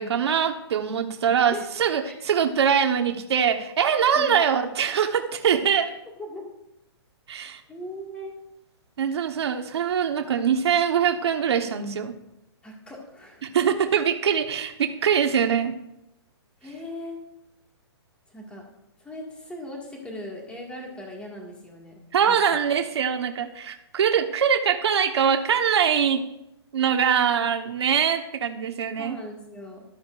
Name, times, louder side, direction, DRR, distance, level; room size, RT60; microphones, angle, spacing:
voice 1, 0.0-5.9 7.3-7.6 9.0-12.1 13.4-15.7 22.1-26.2 26.7-29.2, right 7 dB, 70° right, 5 dB, 1.3 m, -23 dB
voice 2, 6.2-6.5 7.7-8.3 12.6-13.5 16.6-17.2 18.3-18.6 19.0-22.0 22.3-22.6 29.0-29.8, left 1 dB, 5° left, -1 dB, 2.0 m, -39 dB
13.5 x 12.0 x 2.6 m, 0.85 s
hypercardioid pair, 160°, 14 cm